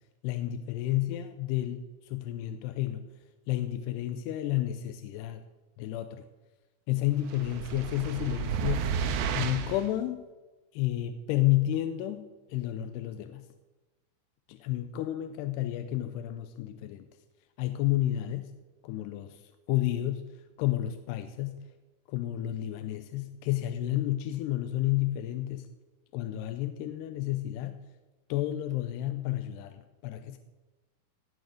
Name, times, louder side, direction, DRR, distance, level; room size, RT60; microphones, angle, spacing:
voice 1, 0.2-3.1 3.5-5.4 5.8-6.2 6.9-8.9 9.3-10.3 10.7-13.5 14.5-17.1 17.6-18.5 18.8-19.4 19.7-20.3 20.6-21.6 22.1-25.7 26.1-27.8 28.3-30.4, left 14 dB, 85° left, 9 dB, 2.6 m, -31 dB
sound 1, 7.3-9.9, right 7 dB, 85° right, 3.1 m, -32 dB
18.0 x 6.4 x 6.5 m, 1.2 s
omnidirectional pair, 4.9 m